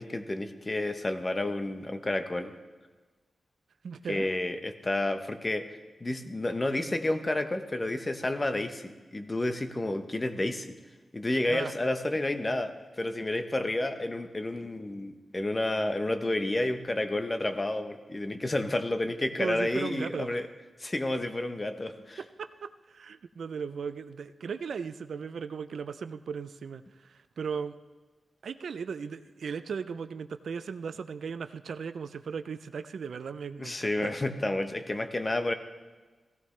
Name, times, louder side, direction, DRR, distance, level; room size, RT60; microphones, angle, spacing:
voice 1, 0.0-2.5 4.1-5.7 6.0-10.8 11.1-20.5 20.8-22.2 33.6-35.5, left 1 dB, 25° left, 9 dB, 0.8 m, -30 dB
voice 2, 3.8-4.3 11.5-11.7 19.4-20.4 22.2-27.8 28.4-34.1, right 6 dB, 80° right, 12 dB, 0.4 m, -37 dB
16.5 x 14.5 x 3.2 m, 1.3 s
wide cardioid pair, 120°, 0 cm